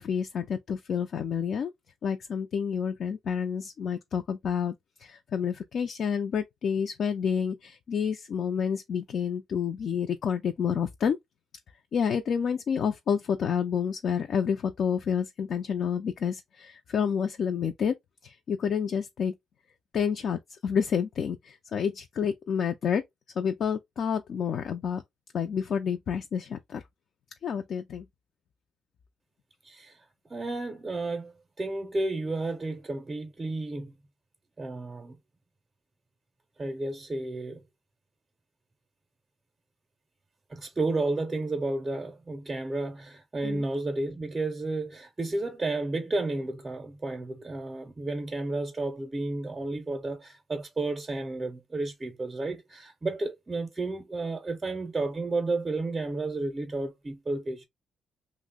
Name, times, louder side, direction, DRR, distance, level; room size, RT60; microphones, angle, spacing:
voice 1, 0.0-1.7 2.0-11.2 11.9-17.9 18.2-19.3 19.9-23.0 23.4-25.0 25.3-26.8 27.4-28.0 43.4-43.6, left 7 dB, 60° left, 0.3 m, -29 dB
voice 2, 29.6-30.0 30.3-34.0 34.6-35.2 36.6-37.6 40.5-57.7, right 2 dB, 25° right, 0.5 m, -32 dB
2.7 x 2.0 x 3.5 m
cardioid pair, 90°, 0 cm